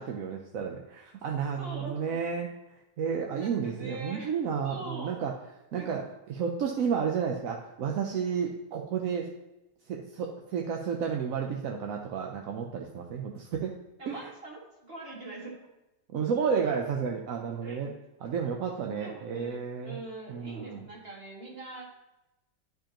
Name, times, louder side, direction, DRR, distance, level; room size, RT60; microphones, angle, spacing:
voice 1, 0.0-2.5 3.0-5.3 5.7-9.3 9.9-13.7 14.1-14.2 16.1-17.9 18.2-20.0 20.3-20.9, right 6 dB, 65° right, 1 dB, 0.9 m, -31 dB
voice 2, 1.6-2.3 3.3-4.3 4.6-5.2 5.7-5.9 14.0-15.5 17.6-18.0 18.7-21.8, right 2 dB, 35° right, -3 dB, 2.0 m, -43 dB
11.5 x 5.0 x 2.9 m, 0.96 s
omnidirectional pair, 1.9 m